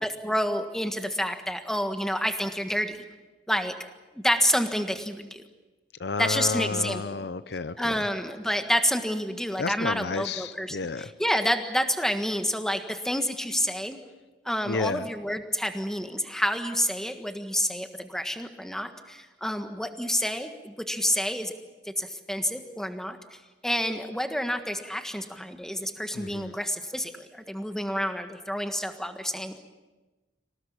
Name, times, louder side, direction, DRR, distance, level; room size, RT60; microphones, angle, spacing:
voice 1, 0.0-3.0 3.5-3.9 4.1-5.4 6.2-7.3 7.8-14.0 14.4-21.5 21.8-29.6, equal, 5° left, 7 dB, 1.5 m, -29 dB
voice 2, 6.0-8.0 9.6-11.1 14.7-15.1 26.1-26.5, left 4 dB, 65° left, 14 dB, 0.7 m, -31 dB
26.5 x 17.5 x 8.6 m, 1.2 s
head